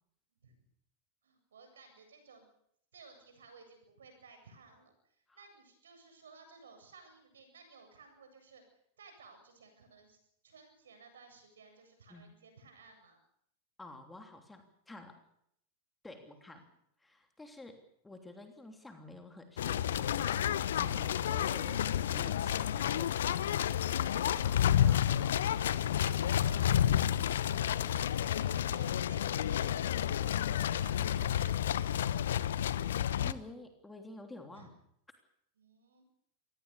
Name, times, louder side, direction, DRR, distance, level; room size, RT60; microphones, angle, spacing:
voice 1, 1.2-2.5 2.9-10.2 10.4-13.2 16.2-16.6 27.8-32.3 34.5-34.7 35.6-36.0, right 4 dB, 65° right, 6 dB, 8.0 m, -58 dB
voice 2, 13.8-15.2 16.0-16.6 17.0-23.7 24.2-25.8 33.2-34.7, left 2 dB, 10° left, 5 dB, 3.2 m, -50 dB
sound 1, 19.6-33.3, left 10 dB, 60° left, 0.9 m, -30 dB
26.0 x 19.5 x 6.9 m, 0.71 s
figure-of-eight pair, 90°, 0 cm